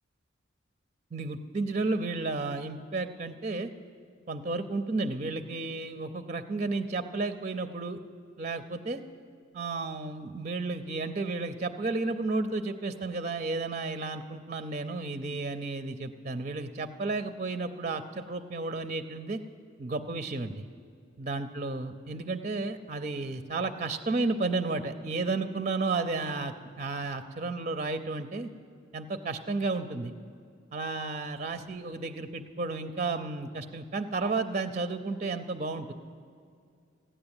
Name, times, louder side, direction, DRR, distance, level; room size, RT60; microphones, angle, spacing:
voice 1, 1.1-3.7 4.3-8.0 8.4-9.0 9.5-19.4 19.8-20.7 21.2-28.5 28.9-30.1 30.7-35.9, right 3 dB, 35° right, 10 dB, 0.5 m, -32 dB
16.0 x 10.0 x 8.8 m, 2.4 s
head